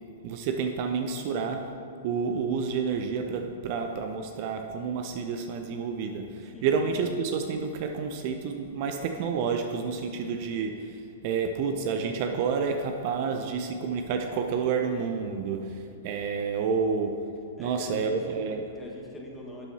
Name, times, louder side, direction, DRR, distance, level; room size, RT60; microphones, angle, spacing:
voice 1, 0.2-1.7 2.0-17.2 17.6-18.6, right 5 dB, 45° right, 5 dB, 0.6 m, -29 dB
voice 2, 17.6-18.4 18.7-19.7, left 1 dB, 10° left, -2 dB, 1.6 m, -43 dB
12.0 x 8.1 x 2.9 m, 2.6 s
figure-of-eight pair, 105°, 0 cm